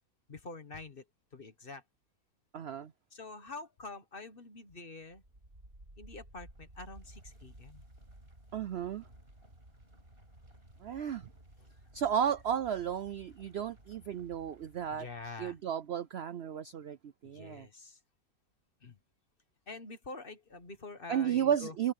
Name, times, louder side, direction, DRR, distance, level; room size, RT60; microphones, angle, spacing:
voice 1, 0.3-1.0 1.3-1.8 3.1-5.2 6.0-7.8 14.9-15.6 17.2-18.0 18.8-19.0 19.7-21.7, left 3 dB, 35° left, 1.6 m, -46 dB
voice 2, 2.5-2.9 8.5-9.0 10.8-11.3 11.9-15.1 15.4-17.7 21.1-21.9, right 8 dB, 60° right, 0.7 m, -33 dB
sound 1, 5.1-15.8, right 1 dB, 40° right, 7.3 m, -56 dB
omnidirectional pair, 1.6 m